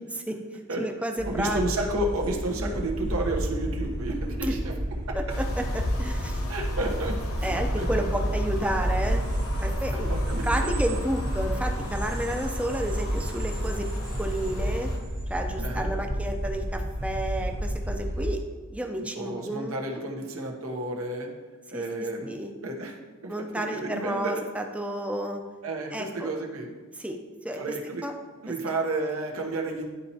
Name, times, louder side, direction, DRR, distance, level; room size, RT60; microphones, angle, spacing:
voice 1, 0.1-1.6 4.4-4.6 5.1-6.4 7.4-9.2 9.6-10.1 10.4-13.9 14.2-14.9 15.3-18.4 18.7-19.8 21.7-22.5 23.3-25.4 25.9-26.3 27.0-27.6 28.0-28.1, right 1 dB, 5° right, 3 dB, 0.5 m, -31 dB
sound 1, 1.2-18.3, right 1 dB, 55° right, 1.4 m, -30 dB
voice 2, 1.2-4.7 5.1-5.2 6.5-8.1 9.9-10.7 15.6-15.9 19.1-21.3 21.7-22.3 22.6-23.0 23.2-24.4 25.6-26.7 27.6-28.0 28.4-29.9, right 2 dB, 75° right, 1 dB, 1.0 m, -31 dB
sound 2, 5.3-15.0, left 1 dB, 85° left, 0.9 m, -35 dB
11.0 x 4.2 x 2.8 m, 1.4 s
head